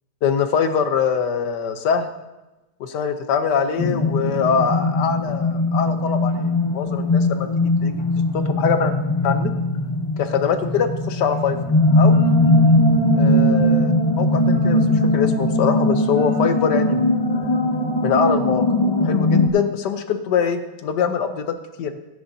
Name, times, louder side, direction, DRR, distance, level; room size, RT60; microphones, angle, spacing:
voice 1, 0.2-2.1 2.8-6.3 6.7-7.5 7.8-7.9 8.3-8.9 9.2-9.5 10.2-11.6 11.9-12.2 13.2-14.8 15.1-17.1 17.3-17.5 18.0-18.6 19.0-21.5 21.8-22.0, left 6 dB, 75° left, 8 dB, 1.4 m, -23 dB
sound 1, 3.8-19.5, left 1 dB, 35° left, 0.4 m, -19 dB
17.0 x 10.0 x 2.7 m, 1.0 s
omnidirectional pair, 1.9 m